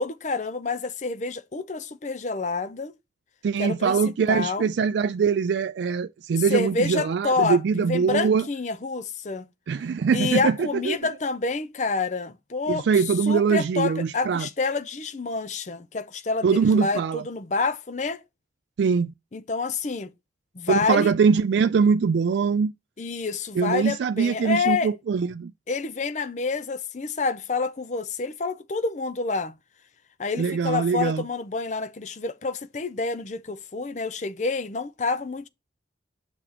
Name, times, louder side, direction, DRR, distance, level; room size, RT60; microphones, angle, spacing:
voice 1, 0.0-2.9 3.6-4.0 4.3-4.7 6.5-9.5 10.1-12.9 13.3-18.2 19.3-20.1 20.5-21.1 23.0-24.9 25.7-29.5 30.2-35.5, left 4 dB, 40° left, 0.6 m, -28 dB
voice 2, 3.4-8.5 9.7-11.0 12.7-14.5 16.4-17.2 18.8-19.1 20.7-22.7 23.6-25.5 30.4-31.2, right 5 dB, 80° right, 0.3 m, -22 dB
7.8 x 5.9 x 2.9 m
head